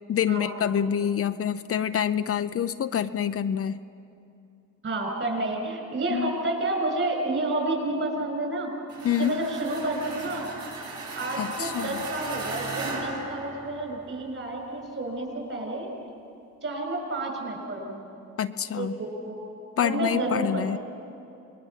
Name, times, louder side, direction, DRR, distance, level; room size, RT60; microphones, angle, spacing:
voice 1, 0.1-3.8 6.1-6.4 9.0-9.4 11.4-12.0 18.4-18.9 19.8-20.8, left 9 dB, 50° left, 10 dB, 0.7 m, -26 dB
voice 2, 4.8-8.7 9.2-10.4 11.2-15.9 16.6-18.0 18.7-19.3 19.8-20.8, right 2 dB, 45° right, 2 dB, 7.1 m, -30 dB
sound 1, 8.9-14.1, right 3 dB, 70° right, 6.8 m, -36 dB
26.5 x 21.0 x 7.4 m, 2.7 s
cardioid pair, 90°, 30 cm